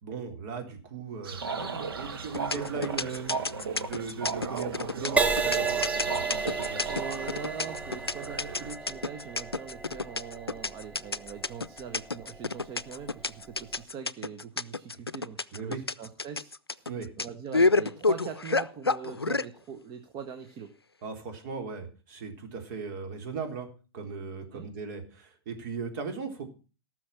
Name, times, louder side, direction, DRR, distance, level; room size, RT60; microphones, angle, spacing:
voice 1, 0.0-3.4 3.8-6.9 15.5-15.8 16.9-17.1 21.0-23.7 23.9-26.5, right 5 dB, 50° right, 5 dB, 3.7 m, -38 dB
sound 1, 1.2-8.7, right 5 dB, 70° right, 2.0 m, -36 dB
sound 2, 2.3-19.5, left 3 dB, 90° left, 0.5 m, -28 dB
Crash cymbal, 5.2-12.8 13.5-13.8, right 4 dB, 10° right, 0.7 m, -33 dB
voice 2, 6.8-16.9 17.2-20.7 24.5-24.7, right 7 dB, 35° right, 8 dB, 1.4 m, -42 dB
17.5 x 6.4 x 5.8 m, 0.34 s
figure-of-eight pair, 95°, 13 cm